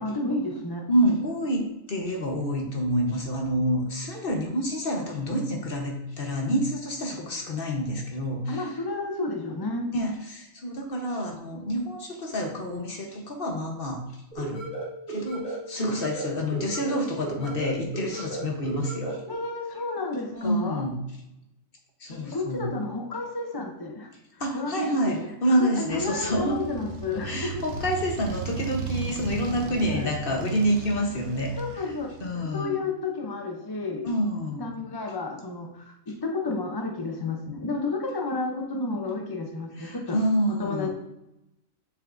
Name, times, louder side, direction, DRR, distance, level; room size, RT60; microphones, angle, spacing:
voice 1, 0.0-0.9 8.5-9.9 19.3-20.9 22.1-24.1 24.5-27.6 29.8-30.1 31.6-34.1 34.6-40.2 40.6-40.9, left 3 dB, 25° left, 2 dB, 0.5 m, -31 dB
voice 2, 0.9-8.7 9.9-14.0 14.3-14.6 15.1-19.2 20.3-21.0 22.0-22.7 24.4-26.6 27.2-31.9 32.2-32.8 34.0-34.7 39.8-40.9, equal, 45° left, 1 dB, 1.3 m, -28 dB
sound 1, 14.3-19.3, right 2 dB, 70° left, 2.6 m, -35 dB
Motorcycle, 25.9-32.6, right 6 dB, 65° right, 0.9 m, -36 dB
7.3 x 5.6 x 2.6 m, 0.86 s
omnidirectional pair, 1.4 m